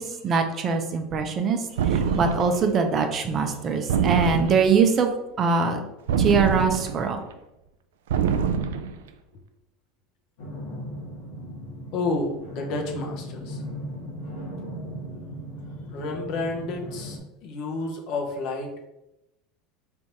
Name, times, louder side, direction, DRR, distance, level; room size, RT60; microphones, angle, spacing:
voice 1, 0.0-5.1 5.4-5.8 6.2-7.2, right 5 dB, 40° right, 5 dB, 0.7 m, -23 dB
sound 1, 1.8-2.7 3.9-4.9 6.1-7.1 8.1-9.0, right 6 dB, 85° right, 0.3 m, -25 dB
sound 2, 10.4-17.2, equal, 85° left, 1.4 m, -37 dB
voice 2, 11.9-13.6 15.1-15.2 15.8-18.9, left 3 dB, 60° left, 2 dB, 0.9 m, -30 dB
3.5 x 2.7 x 4.6 m, 0.88 s
hypercardioid pair, 95°, 0 cm